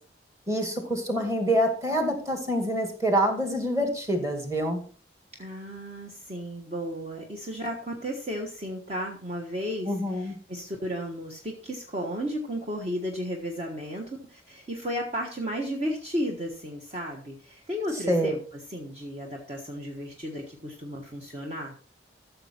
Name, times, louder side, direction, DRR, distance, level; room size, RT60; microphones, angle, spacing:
voice 1, 0.5-4.8 9.9-10.3 18.1-18.3, equal, 15° right, 4 dB, 2.2 m, -26 dB
voice 2, 5.4-21.7, equal, 35° right, 0 dB, 1.4 m, -34 dB
14.0 x 6.9 x 4.4 m, 0.42 s
head